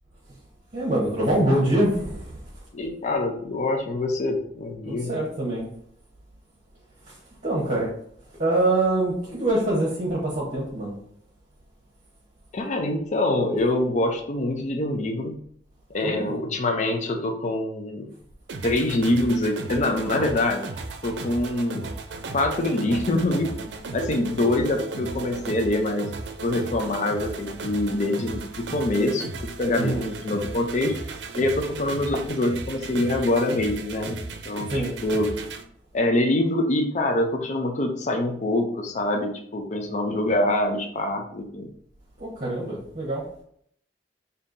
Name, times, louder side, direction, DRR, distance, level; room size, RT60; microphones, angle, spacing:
voice 1, 0.7-2.4 4.8-5.7 7.1-7.2 7.4-7.9 8.4-10.9 16.0-16.4 29.8-30.1 34.7-34.9 42.2-43.2, right 1 dB, 40° right, -6 dB, 1.0 m, -24 dB
voice 2, 2.7-5.1 12.5-15.4 15.9-18.1 18.6-20.7 21.0-21.9 22.3-23.5 23.9-26.1 26.4-30.9 31.3-34.7 35.0-35.3 35.9-41.7, left 1 dB, 45° left, 4 dB, 0.5 m, -25 dB
sound 1, 18.5-35.6, right 3 dB, 80° right, 0.5 m, -35 dB
5.2 x 2.7 x 2.6 m, 0.66 s
head